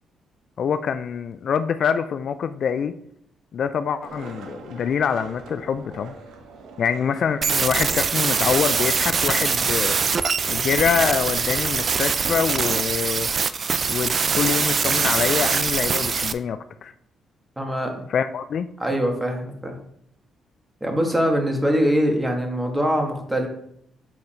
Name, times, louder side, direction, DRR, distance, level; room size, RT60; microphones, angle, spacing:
voice 1, 0.6-2.9 3.5-6.2 6.8-10.0 10.5-13.3 13.9-16.9 18.1-18.7, left 7 dB, 60° left, 11 dB, 0.4 m, -25 dB
Skateboard, 4.0-9.7, right 4 dB, 85° right, 1.1 m, -43 dB
sound 1, 7.4-16.3, right 5 dB, 45° right, 0.4 m, -23 dB
voice 2, 17.6-18.0 18.8-19.8 20.8-23.5, equal, 10° right, 2 dB, 1.6 m, -23 dB
7.5 x 4.0 x 4.3 m, 0.71 s
cardioid pair, 90°, 0 cm